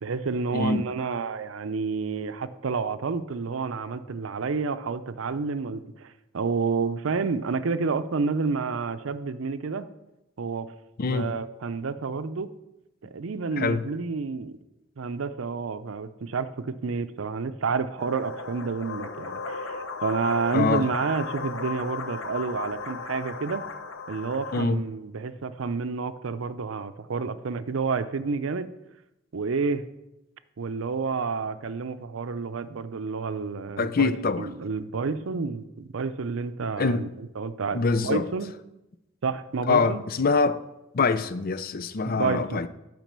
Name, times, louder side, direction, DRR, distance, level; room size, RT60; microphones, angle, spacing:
voice 1, 0.0-9.9 10.4-10.7 11.1-12.5 13.0-14.6 15.0-23.6 24.1-28.7 29.3-29.9 30.6-34.1 34.4-38.5 39.2-40.0 42.0-42.7, right 4 dB, 85° right, 0.5 m, -29 dB
voice 2, 0.5-0.8 11.0-11.3 13.6-13.8 20.5-20.8 24.5-24.8 33.8-34.5 36.8-37.1 37.7-38.3 39.7-40.6 40.9-42.7, left 4 dB, 45° left, 0.5 m, -24 dB
sound 1, 18.0-24.6, left 4 dB, 80° left, 0.8 m, -35 dB
9.2 x 5.2 x 6.7 m
head